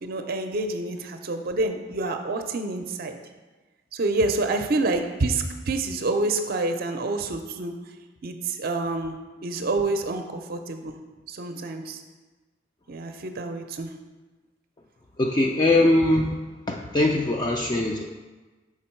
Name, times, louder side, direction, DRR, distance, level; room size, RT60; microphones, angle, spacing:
voice 1, 0.0-3.2 3.9-7.7 8.2-9.2 9.4-11.0 11.3-12.0 12.9-13.9, right 2 dB, 50° right, 6 dB, 0.5 m, -27 dB
voice 2, 15.2-16.4 16.7-18.0, left 2 dB, 20° left, 1 dB, 0.3 m, -21 dB
5.9 x 4.4 x 4.4 m, 1.3 s
head